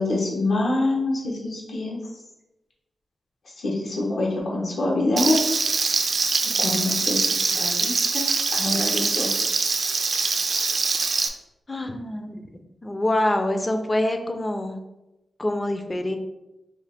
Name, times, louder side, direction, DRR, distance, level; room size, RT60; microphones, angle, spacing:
voice 1, 0.0-2.0 3.6-5.4 6.4-9.6, left 2 dB, 70° left, -3 dB, 0.9 m, -26 dB
Frying (food), 5.2-11.3, right 4 dB, 55° right, 0.4 m, -23 dB
voice 2, 11.7-14.8 15.4-16.2, left 1 dB, 20° left, 6 dB, 0.5 m, -26 dB
4.8 x 2.5 x 3.4 m, 0.96 s
wide cardioid pair, 120°, 0 cm